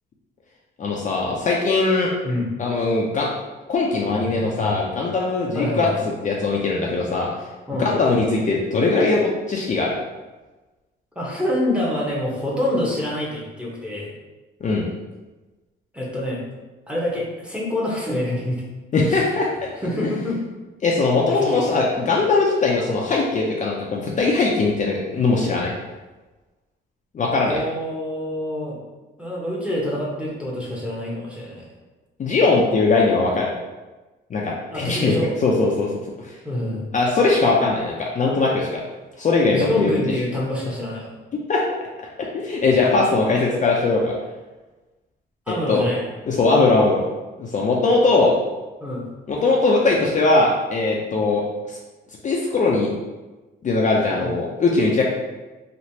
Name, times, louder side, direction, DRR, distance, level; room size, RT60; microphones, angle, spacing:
voice 1, 0.8-2.1 2.6-3.3 3.7-5.9 6.2-7.3 7.8-10.0 14.6-14.9 18.9-19.7 20.8-25.7 27.1-27.6 32.2-33.5 34.3-35.9 36.2-36.3 36.9-38.8 39.2-40.0 41.5-41.6 42.2-44.1 45.7-45.9 46.3-47.0 47.4-48.4 49.3-51.8 52.2-52.9 53.6-55.0, left 3 dB, 40° left, -2 dB, 0.5 m, -20 dB
voice 2, 5.5-5.9 7.7-7.9 11.1-14.1 15.9-16.4 16.9-18.6 19.1-19.2 19.8-20.4 21.3-21.8 27.4-28.8 29.2-31.6 34.7-35.3 36.4-36.9 39.5-41.1 45.5-46.1 48.8-49.1 54.2-54.3, left 1 dB, 5° right, -5 dB, 0.9 m, -26 dB
3.1 x 2.5 x 2.8 m, 1.2 s
cardioid pair, 90°, 20 cm